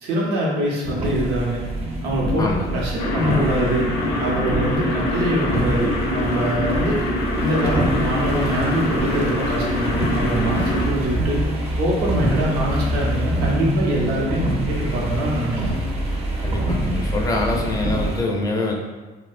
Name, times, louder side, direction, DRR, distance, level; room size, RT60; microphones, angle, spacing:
voice 1, 0.0-1.7 2.0-3.9 4.2-7.0 7.4-11.4 11.8-15.7, right 1 dB, 75° right, -4 dB, 0.7 m, -24 dB
sound 1, 0.8-18.2, right 1 dB, 40° right, 0.5 m, -25 dB
voice 2, 2.4-2.8 16.4-18.7, left 2 dB, 20° left, 0 dB, 0.4 m, -24 dB
sound 2, 3.0-10.9, left 2 dB, 90° left, 0.4 m, -25 dB
2.6 x 2.1 x 2.4 m, 1.3 s
cardioid pair, 110°, 17 cm